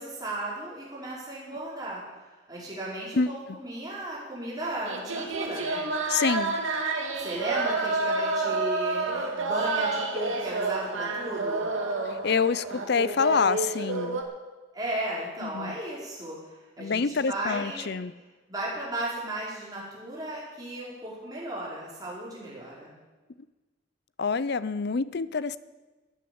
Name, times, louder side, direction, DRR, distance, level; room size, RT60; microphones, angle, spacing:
voice 1, 0.0-2.0 2.5-5.8 7.2-11.7 14.7-16.4 16.8-17.9 18.5-22.9, right 1 dB, 20° right, -6 dB, 5.3 m, -35 dB
sound 1, 4.8-14.2, right 3 dB, 75° right, 2.1 m, -29 dB
voice 2, 6.1-6.6 12.1-14.2 15.4-15.8 16.8-18.1 24.2-25.6, left 5 dB, 55° left, 16 dB, 0.5 m, -26 dB
15.0 x 9.0 x 8.7 m, 1.2 s
head